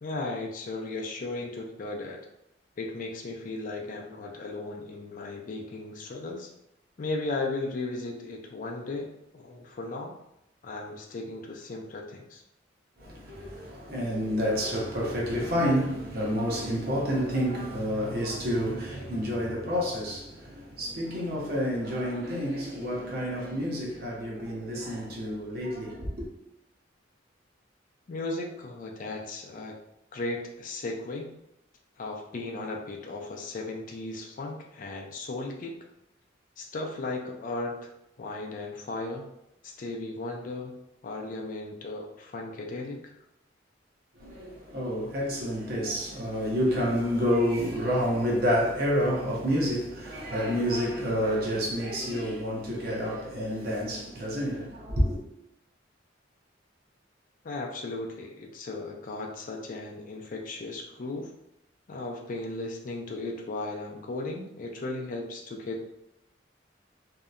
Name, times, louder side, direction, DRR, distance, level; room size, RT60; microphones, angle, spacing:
voice 1, 0.0-2.2 2.8-6.5 7.0-9.1 9.3-10.1 10.6-12.4 28.1-29.8 30.1-31.3 32.0-35.8 36.6-37.9 38.2-39.3 39.6-43.1 57.4-61.3 61.9-65.8, left 2 dB, 45° left, 0.4 m, -36 dB
voice 2, 13.0-26.3 44.2-55.2, equal, 55° right, 0.7 m, -29 dB
2.7 x 2.1 x 2.4 m
head